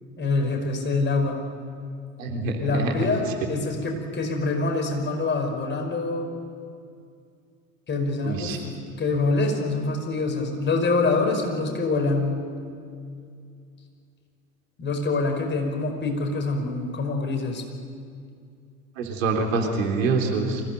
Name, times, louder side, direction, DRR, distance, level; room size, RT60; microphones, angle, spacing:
voice 1, 0.2-1.4 2.6-6.3 7.9-8.6 9.0-12.4 14.8-17.6, left 3 dB, 25° left, 3 dB, 5.2 m, -25 dB
voice 2, 2.2-2.9 8.2-8.6 19.0-20.6, right 3 dB, 70° right, 2 dB, 3.5 m, -25 dB
24.5 x 17.0 x 9.2 m, 2.3 s
figure-of-eight pair, 75°, 41 cm